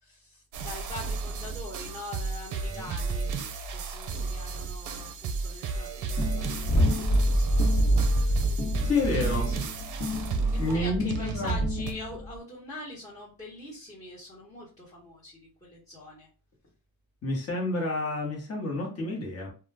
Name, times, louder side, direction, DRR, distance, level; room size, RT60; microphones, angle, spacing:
voice 1, 0.0-3.3 3.7-7.8 8.1-8.5 9.0-9.6 10.5-16.3, left 2 dB, 20° left, -10 dB, 1.1 m, -43 dB
sound 1, 0.5-11.9, right 4 dB, 55° right, 0.5 m, -33 dB
sound 2, 6.2-12.4, equal, 60° left, 1.1 m, -27 dB
voice 2, 8.8-9.5 10.5-11.6 17.2-19.5, left 2 dB, 40° left, -1 dB, 1.1 m, -29 dB
2.3 x 2.3 x 3.2 m, 0.36 s
cardioid pair, 135°, 37 cm